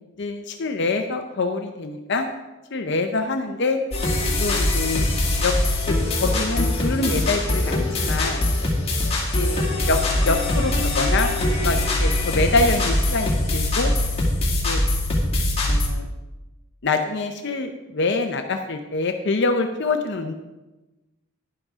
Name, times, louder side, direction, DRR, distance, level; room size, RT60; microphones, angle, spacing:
voice 1, 0.2-2.3 2.7-3.8 4.4-5.0 5.4-5.5 5.9-6.0 6.2-8.4 9.4-9.6 9.9-10.0 10.3-11.3 11.6-13.9 14.6-14.8 15.7-16.0 16.8-20.3, left 3 dB, 55° left, 5 dB, 0.7 m, -25 dB
sound 1, 3.9-15.9, left 1 dB, 30° left, 2.2 m, -22 dB
11.0 x 10.5 x 3.6 m, 1.1 s
head